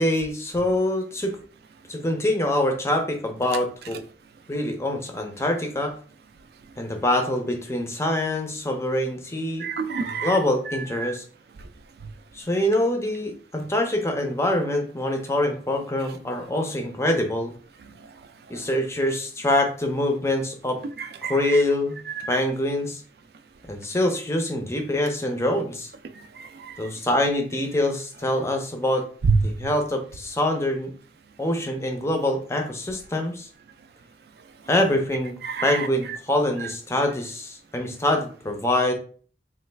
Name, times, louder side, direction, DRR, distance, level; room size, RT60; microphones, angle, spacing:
voice 1, 0.0-1.4 1.9-4.0 4.5-5.9 6.8-9.7 10.0-11.2 12.3-17.5 18.5-20.8 21.3-22.0 22.3-23.0 23.7-25.9 26.8-29.1 29.4-30.9 31.4-33.5 34.7-35.3 35.6-38.9, left 1 dB, 15° left, 4 dB, 0.4 m, -25 dB
voice 2, 9.6-10.4 10.7-11.1 11.6-11.7 12.0-12.1 17.9-18.2 18.5-18.7 21.0-21.6 22.1-22.4 26.1-26.9 29.3-29.4 35.4-35.9 36.6-36.7, right 5 dB, 65° right, 9 dB, 0.4 m, -28 dB
3.1 x 2.3 x 3.2 m, 0.43 s
head